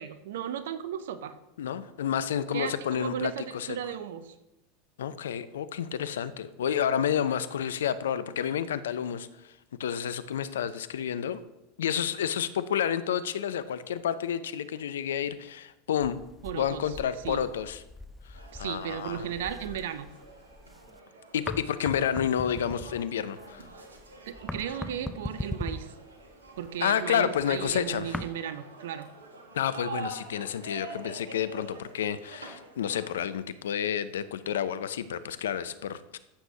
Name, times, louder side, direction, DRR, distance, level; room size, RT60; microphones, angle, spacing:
voice 1, 0.0-1.4 2.5-4.3 16.4-17.0 17.2-17.4 18.5-20.1 24.3-25.9 26.6-29.1, right 9 dB, 70° right, 11 dB, 0.7 m, -35 dB
voice 2, 1.6-3.7 5.0-9.3 9.8-11.4 11.8-16.2 16.5-17.8 18.3-19.3 21.3-23.6 26.8-28.2 29.5-36.2, left 9 dB, 75° left, 14 dB, 0.6 m, -30 dB
sound 1, 16.0-21.0 21.3-28.3, left 2 dB, 5° left, 0.5 m, -41 dB
sound 2, 18.3-33.3, right 3 dB, 90° right, 1.4 m, -46 dB
14.0 x 8.0 x 2.8 m, 0.94 s
hypercardioid pair, 85°, 0 cm